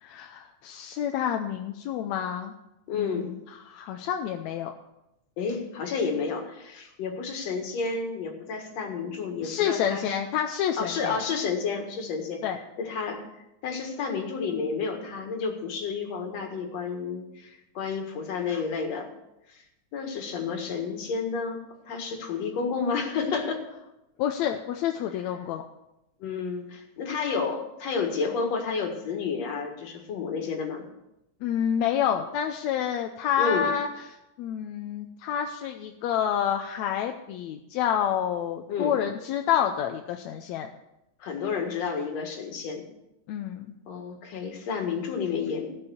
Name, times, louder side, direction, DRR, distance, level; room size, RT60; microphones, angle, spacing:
voice 1, 0.0-2.5 2.9-3.3 3.7-4.7 9.4-11.2 12.4-12.6 24.2-25.6 31.4-33.9 34.4-40.7 43.3-43.7, left 9 dB, 80° left, 5 dB, 1.9 m, -28 dB
voice 2, 2.9-3.3 5.4-10.2 10.8-12.4 12.8-19.1 19.5-19.6 19.9-21.6 21.9-23.6 26.2-30.8 33.4-33.7 38.7-39.0 41.2-42.9 43.9-45.7, left 5 dB, 65° left, 3 dB, 2.8 m, -31 dB
16.0 x 5.3 x 6.9 m, 0.90 s
omnidirectional pair, 3.4 m